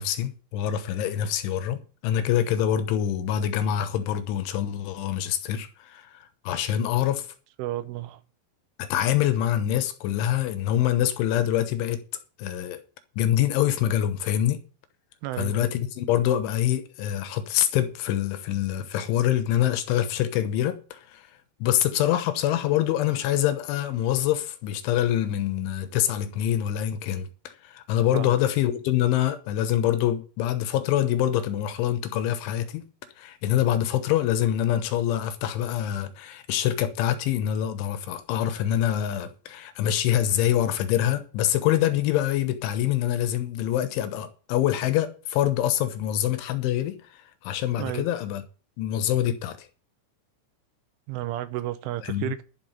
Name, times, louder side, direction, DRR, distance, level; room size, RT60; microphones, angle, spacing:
voice 1, 0.0-7.3 8.8-12.0 12.4-12.8 13.2-14.6 15.4-21.3 21.6-32.8 33.2-48.4 48.8-49.7 52.0-52.3, left 11 dB, 75° left, 3.3 m, -25 dB
voice 2, 7.6-8.2 15.2-15.6 28.1-28.3 47.8-48.1 51.1-52.4, right 14 dB, 80° right, 3.2 m, -32 dB
11.5 x 6.1 x 8.9 m
omnidirectional pair, 5.9 m